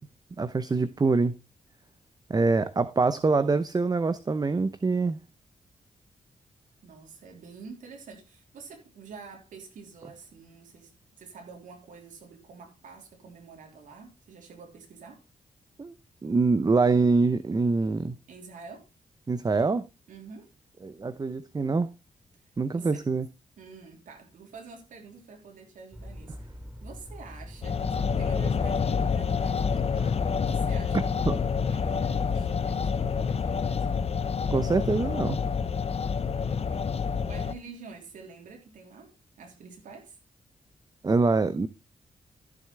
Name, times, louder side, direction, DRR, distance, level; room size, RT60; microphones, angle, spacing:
voice 1, 0.4-1.3 2.3-5.2 15.8-15.9 16.2-18.2 19.3-19.8 20.8-21.9 22.6-23.3 30.9-31.4 34.5-35.4 41.0-41.7, right 3 dB, 30° right, 0.7 m, -25 dB
voice 2, 6.8-10.9 11.2-15.2 18.3-18.9 20.1-20.5 22.3-23.0 23.6-26.4 26.8-29.9 30.4-34.0 36.3-39.1 39.4-40.2, right 5 dB, 85° right, 3.4 m, -47 dB
sound 1, 25.9-31.3, equal, 10° right, 5.6 m, -43 dB
sound 2, 27.6-37.5, left 6 dB, 50° left, 1.0 m, -28 dB
14.5 x 7.4 x 3.3 m
cardioid pair, 80°, 13 cm